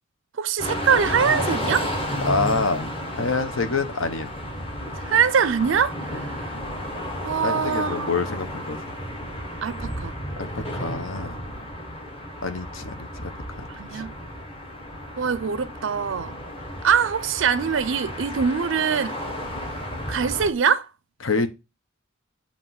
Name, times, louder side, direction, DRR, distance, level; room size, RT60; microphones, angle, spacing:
voice 1, 0.4-1.9 5.0-6.6 7.2-8.1 9.6-10.1 13.8-14.1 15.2-16.4 16.8-19.2 20.1-20.9, right 7 dB, 60° right, 0.4 m, -23 dB
sound 1, 0.6-20.5, equal, 25° left, 1.2 m, -32 dB
voice 2, 2.2-4.4 6.1-6.2 7.4-8.8 10.4-11.4 12.4-13.3 13.6-13.7 13.9-14.0 21.2-21.5, left 4 dB, 65° left, 0.9 m, -27 dB
7.4 x 2.9 x 5.7 m
head